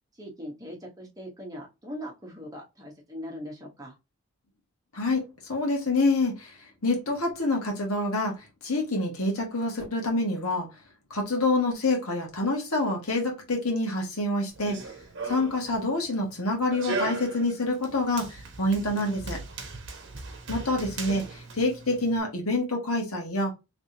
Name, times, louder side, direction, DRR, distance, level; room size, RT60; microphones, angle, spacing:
voice 1, 0.2-3.9, equal, 15° right, 1.0 m, -40 dB
voice 2, 4.9-6.5 6.8-10.7 11.1-14.8 15.3-19.4 20.5-23.5, left 2 dB, 75° left, 1.4 m, -27 dB
Run, 14.5-22.2, right 3 dB, 55° right, 0.9 m, -38 dB
3.4 x 3.3 x 2.7 m
head